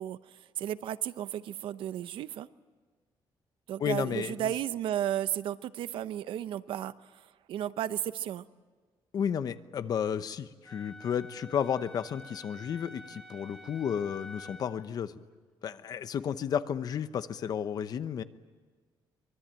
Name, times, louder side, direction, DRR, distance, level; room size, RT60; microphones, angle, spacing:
voice 1, 0.0-2.5 3.7-8.4, right 11 dB, 75° right, 15 dB, 0.7 m, -34 dB
voice 2, 3.8-4.5 9.1-15.1 15.6-18.2, left 8 dB, 45° left, 13 dB, 0.9 m, -32 dB
Wind instrument woodwind instrument, 10.7-14.8, left 2 dB, 5° left, 2.1 m, -49 dB
24.0 x 22.5 x 9.0 m, 1.4 s
cardioid pair, 160°, 9 cm